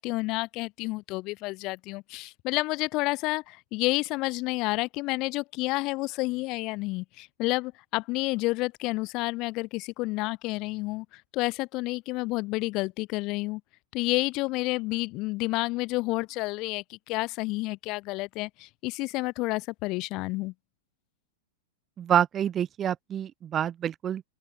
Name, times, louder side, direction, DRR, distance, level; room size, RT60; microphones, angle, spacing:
voice 1, 0.0-13.6 13.9-20.5, left 22 dB, 45° left, 5.2 m, -30 dB
voice 2, 22.0-24.2, right 9 dB, 30° right, 1.0 m, -27 dB
open air
hypercardioid pair, 105°, 0 cm